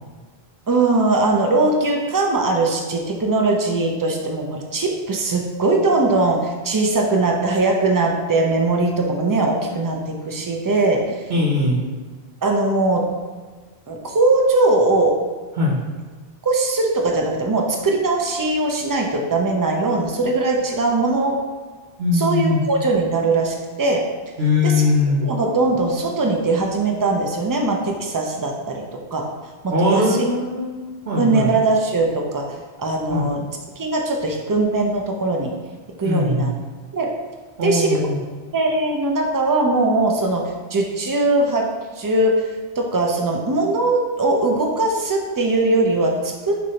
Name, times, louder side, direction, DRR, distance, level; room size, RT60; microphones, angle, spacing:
voice 1, 0.7-10.0 10.2-11.2 12.4-13.1 13.9-15.1 16.4-21.4 22.1-24.0 24.6-24.7 25.2-28.8 29.1-29.2 29.6-30.2 31.2-33.5 33.8-35.5 36.0-36.5 36.9-37.1 37.6-38.0 38.5-41.6 42.0-42.5 42.8-46.6, right 2 dB, 35° right, 1 dB, 0.3 m, -20 dB
voice 2, 11.3-11.8 15.5-15.8 22.0-22.6 24.4-25.3 29.7-30.7 31.0-31.5 33.1-33.3 36.0-36.5 37.6-38.2, left 2 dB, 80° right, -4 dB, 1.0 m, -20 dB
6.3 x 2.6 x 2.9 m, 1.4 s
omnidirectional pair, 1.0 m